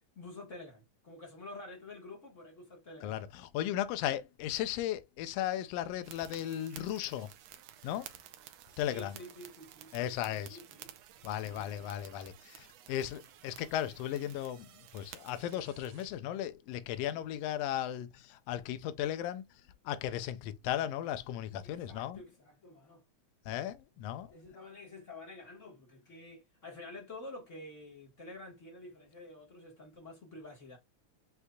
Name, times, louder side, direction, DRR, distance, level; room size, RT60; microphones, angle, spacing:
voice 1, 0.1-3.2 8.9-10.9 11.4-11.9 21.6-23.1 24.3-30.8, left 2 dB, 35° left, 1.2 m, -49 dB
voice 2, 3.0-7.3 7.8-8.1 8.8-9.1 9.9-10.6 11.2-19.4 19.8-22.2 23.4-24.3, left 11 dB, 80° left, 1.5 m, -36 dB
sound 1, 6.0-16.1, right 11 dB, 75° right, 1.7 m, -54 dB
8.0 x 2.7 x 2.3 m
omnidirectional pair, 3.4 m